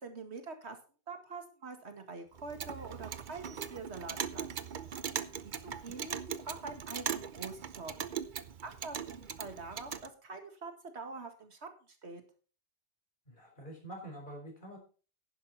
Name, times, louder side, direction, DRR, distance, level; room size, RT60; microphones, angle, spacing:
voice 1, 0.0-0.8 1.1-4.5 5.4-6.2 6.4-7.9 8.6-12.2, right 3 dB, 75° right, 6 dB, 2.2 m, -45 dB
Clock, 2.4-10.1, right 7 dB, 50° right, 0.8 m, -40 dB
voice 2, 5.5-6.0 13.3-14.8, right 1 dB, 45° left, 1 dB, 4.7 m, -47 dB
11.0 x 10.5 x 4.1 m, 0.37 s
omnidirectional pair, 1.1 m